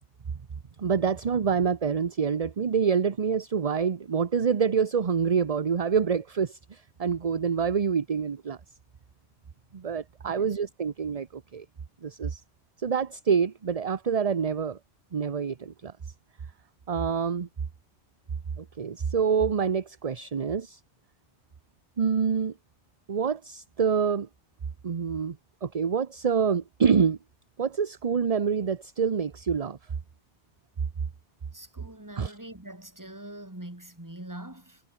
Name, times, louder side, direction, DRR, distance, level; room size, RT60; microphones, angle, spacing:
voice 1, 0.8-8.6 9.7-11.6 12.0-12.4 12.8-14.8 15.1-15.9 16.9-17.5 18.6-20.8 22.0-22.5 23.1-24.3 24.8-27.2 27.6-29.8 32.2-32.4, right 6 dB, 35° right, 0.8 m, -26 dB
voice 2, 10.2-10.6 31.5-34.8, right 1 dB, 15° right, 2.7 m, -43 dB
omnidirectional pair, 1.2 m